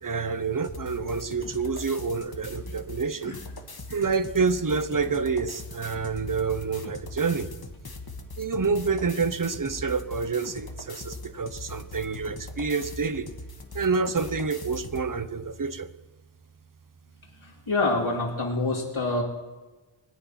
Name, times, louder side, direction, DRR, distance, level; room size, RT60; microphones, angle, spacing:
voice 1, 0.0-3.4 3.9-7.5 8.4-13.3 13.7-15.9, right 4 dB, 40° right, 14 dB, 0.8 m, -28 dB
sound 1, 0.6-15.1, left 2 dB, 45° left, 1.5 m, -41 dB
voice 2, 17.7-19.2, left 2 dB, 70° left, -3 dB, 2.5 m, -26 dB
20.5 x 9.0 x 5.8 m, 1.2 s
wide cardioid pair, 65°, 50 cm